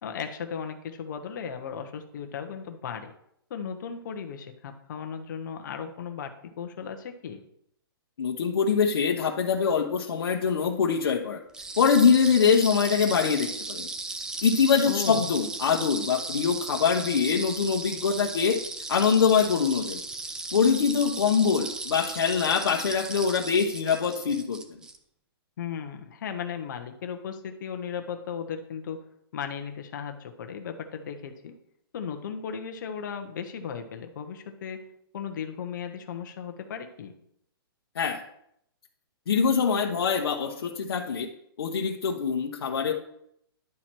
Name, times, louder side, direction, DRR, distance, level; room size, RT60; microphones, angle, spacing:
voice 1, 0.0-3.1 3.5-7.4 14.9-15.3 25.6-29.0 29.3-31.5 31.9-34.8 35.1-37.1, left 7 dB, 50° left, 6 dB, 1.0 m, -36 dB
voice 2, 8.2-11.4 11.8-13.9 14.4-18.6 18.9-20.0 20.5-24.8 37.9-38.2 39.3-41.3 41.6-42.9, left 6 dB, 75° left, -1 dB, 1.1 m, -24 dB
sound 1, 11.5-25.0, right 3 dB, 5° right, 0.4 m, -36 dB
11.0 x 4.4 x 4.5 m, 0.73 s
hypercardioid pair, 160°, 13 cm